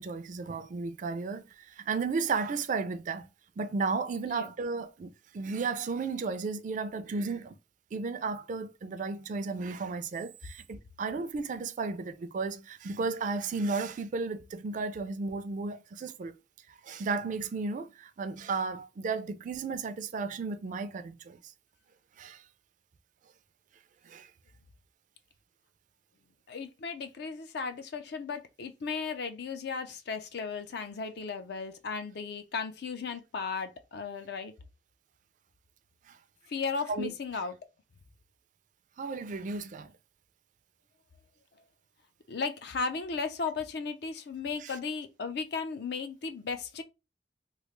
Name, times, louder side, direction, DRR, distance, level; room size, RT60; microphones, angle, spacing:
voice 1, 0.0-3.3 3.6-7.6 7.9-16.3 16.7-21.4 22.2-22.4 24.0-24.3 36.1-36.2 36.9-37.1 39.0-39.9 44.6-44.7, right 4 dB, 45° right, 0.4 m, -34 dB
voice 2, 26.5-34.5 36.5-37.5 42.3-46.8, left 5 dB, 65° left, 0.5 m, -35 dB
3.1 x 2.4 x 3.1 m
head